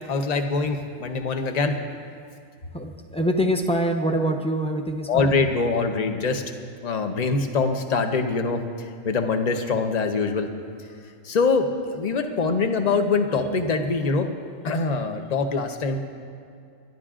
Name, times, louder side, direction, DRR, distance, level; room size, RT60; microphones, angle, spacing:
voice 1, 0.1-1.8 5.1-6.4 6.8-8.6 9.0-10.5 11.2-14.3 14.6-16.0, left 4 dB, 35° left, 5 dB, 0.9 m, -23 dB
voice 2, 2.7-5.3, equal, 5° left, 3 dB, 0.7 m, -24 dB
28.5 x 12.0 x 2.5 m, 2.4 s
omnidirectional pair, 1.3 m